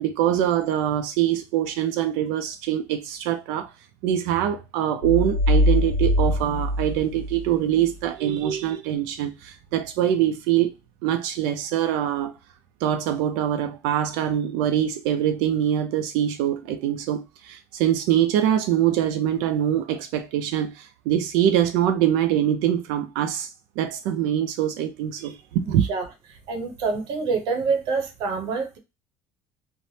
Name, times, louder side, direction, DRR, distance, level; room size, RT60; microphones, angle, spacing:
voice 1, 0.0-3.7 4.0-10.7 11.0-12.3 12.8-23.5 23.8-25.8, right 11 dB, 85° right, 0.4 m, -24 dB
sound 1, 5.0-7.9, left 1 dB, 50° left, 0.5 m, -23 dB
voice 2, 25.6-26.1 26.5-28.8, right 4 dB, 65° right, 0.8 m, -26 dB
3.2 x 2.0 x 2.6 m
cardioid pair, 125°, 8 cm